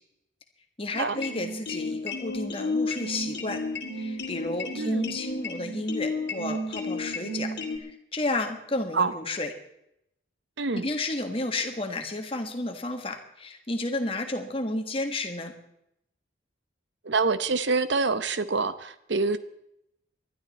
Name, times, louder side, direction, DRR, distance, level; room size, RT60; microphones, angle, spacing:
voice 1, 0.8-3.6 3.9-9.5 10.7-15.5, left 2 dB, 30° left, 5 dB, 1.6 m, -32 dB
sound 1, 1.1-7.8, left 2 dB, 65° left, 2.0 m, -32 dB
voice 2, 4.8-5.2 8.9-9.1 10.6-10.9 17.0-19.4, right 4 dB, 65° right, 13 dB, 0.9 m, -26 dB
19.5 x 12.0 x 4.2 m, 0.79 s
head